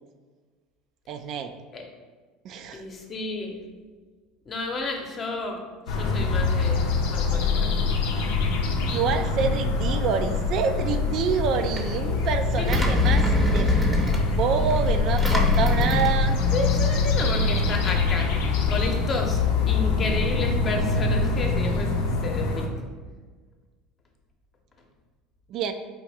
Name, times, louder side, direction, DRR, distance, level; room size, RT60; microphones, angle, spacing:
voice 1, 1.1-1.5 2.4-2.8 8.9-13.7 14.0-16.4 25.5-25.7, right 6 dB, 55° right, 8 dB, 0.3 m, -27 dB
voice 2, 2.7-3.6 4.5-5.6 5.9-6.8 7.1-7.8 12.6-12.8 16.5-18.3 18.7-19.4 19.7-21.9 22.2-22.7, left 3 dB, 35° left, 2 dB, 0.8 m, -31 dB
sound 1, 5.9-22.7, left 4 dB, 75° left, 0.5 m, -24 dB
Engine, 11.3-17.4, right 2 dB, 15° right, 0.7 m, -28 dB
4.5 x 2.6 x 3.3 m, 1.4 s
hypercardioid pair, 90°, 0 cm